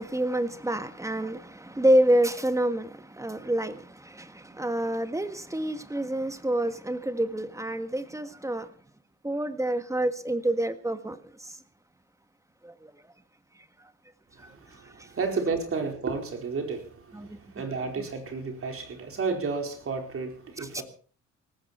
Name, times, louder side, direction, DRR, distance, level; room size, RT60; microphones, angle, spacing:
voice 1, 0.0-8.7 9.2-11.6 12.6-12.9 14.4-14.5 15.0-15.1 17.1-17.4 20.6-20.8, right 1 dB, 10° right, 1.5 m, -28 dB
voice 2, 14.4-20.8, right 4 dB, 45° right, 4.5 m, -32 dB
18.5 x 15.0 x 4.3 m
cardioid pair, 90°, 30 cm